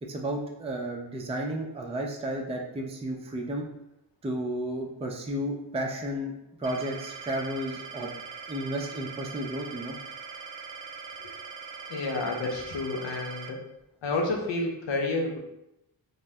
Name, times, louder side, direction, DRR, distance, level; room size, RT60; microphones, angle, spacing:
voice 1, 0.0-3.7 4.2-6.3 6.6-8.1 8.5-10.0, right 1 dB, 15° right, 0 dB, 0.5 m, -32 dB
sound 1, 6.6-13.5, right 5 dB, 60° right, 0.5 m, -42 dB
voice 2, 11.9-13.6 14.0-15.4, left 2 dB, 65° left, 1 dB, 0.7 m, -30 dB
2.6 x 2.1 x 3.3 m, 0.86 s
cardioid pair, 40°, 48 cm